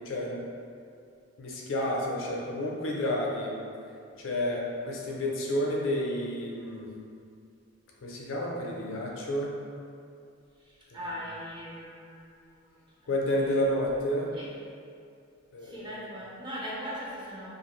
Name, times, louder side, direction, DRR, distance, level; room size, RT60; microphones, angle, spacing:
voice 1, 0.1-0.4 1.4-3.5 4.2-6.9 8.0-9.5 10.9-11.0 13.1-14.3 15.5-16.0, left 1 dB, 65° left, -3 dB, 0.5 m, -30 dB
voice 2, 10.6-13.5 14.3-14.5 15.6-17.5, equal, 25° right, -6 dB, 0.5 m, -40 dB
2.6 x 2.4 x 3.0 m, 2.4 s
head